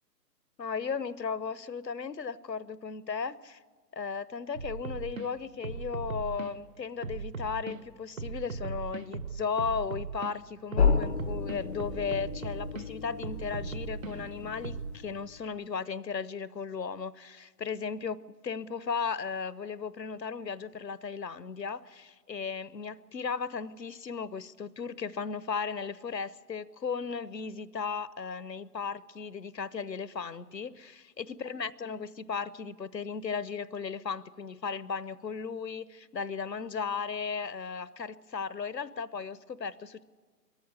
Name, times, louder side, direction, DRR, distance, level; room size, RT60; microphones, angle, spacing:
voice 1, 0.6-3.6 3.9-40.0, left 5 dB, 80° left, 0.9 m, -36 dB
sound 1, 4.5-5.3 5.6-6.5 7.0-7.8 8.2-10.3 10.7-12.8 13.2-14.9, right 5 dB, 55° right, 1.3 m, -38 dB
sound 2, 10.8-15.4, left 5 dB, 40° left, 0.5 m, -32 dB
21.5 x 14.0 x 9.6 m
figure-of-eight pair, 135°, 50 cm